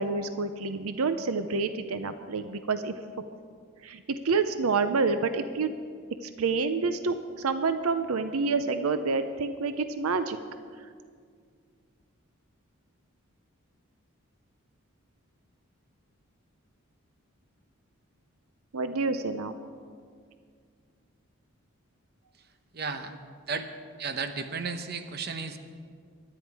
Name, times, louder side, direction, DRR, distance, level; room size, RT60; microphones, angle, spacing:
voice 1, 0.0-2.9 3.8-5.7 6.2-10.4 18.7-19.5, right 4 dB, 80° right, 10 dB, 0.6 m, -28 dB
voice 2, 22.7-23.1 23.5-23.7 24.0-25.6, right 5 dB, 45° right, 8 dB, 0.9 m, -33 dB
23.0 x 9.9 x 4.8 m, 2.1 s
head